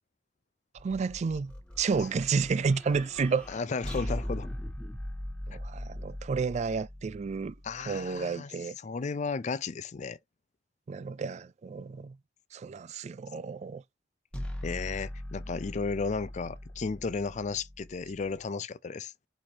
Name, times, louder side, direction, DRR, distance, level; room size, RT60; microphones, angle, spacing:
voice 1, 0.7-3.5 5.5-7.5 7.9-8.8 10.9-12.2 12.5-13.8, right 5 dB, 40° right, 0.3 m, -31 dB
sound 1, 0.8-8.1 14.3-18.4, left 1 dB, 5° left, 1.1 m, -40 dB
voice 2, 3.5-4.5 7.6-8.5 8.8-10.2 14.6-19.1, left 4 dB, 40° left, 0.4 m, -34 dB
4.5 x 4.2 x 2.8 m
head